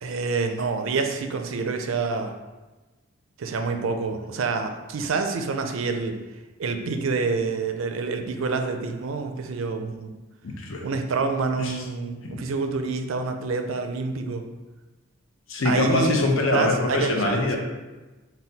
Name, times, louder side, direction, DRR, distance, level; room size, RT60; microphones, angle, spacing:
voice 1, 0.0-2.3 3.4-6.2 6.6-10.1 10.8-14.4 15.6-16.2 16.5-17.6, right 4 dB, 75° right, 6 dB, 0.4 m, -27 dB
voice 2, 10.4-10.8 11.6-11.8 12.2-12.4 15.5-17.6, left 2 dB, 75° left, 1 dB, 0.7 m, -23 dB
4.1 x 2.2 x 3.9 m, 1.2 s
head